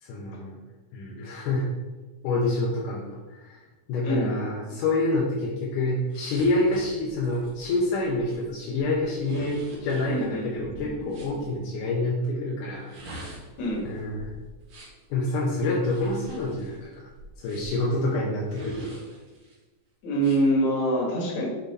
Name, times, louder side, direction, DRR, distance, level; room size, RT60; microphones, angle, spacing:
voice 1, 0.0-0.6 0.9-1.7 2.2-3.6 3.9-13.4 13.9-14.3 15.1-17.1 17.4-19.0, left 2 dB, 80° left, -2 dB, 2.3 m, -27 dB
sound 1, 6.1-11.4 12.7-15.1 15.8-17.9 18.5-19.6 20.2-20.4, right 2 dB, 50° right, 1.8 m, -43 dB
voice 2, 10.1-11.5 13.6-13.8 20.0-21.5, right 1 dB, 65° left, -2 dB, 2.7 m, -26 dB
7.4 x 3.9 x 4.0 m, 1.2 s
omnidirectional pair, 3.6 m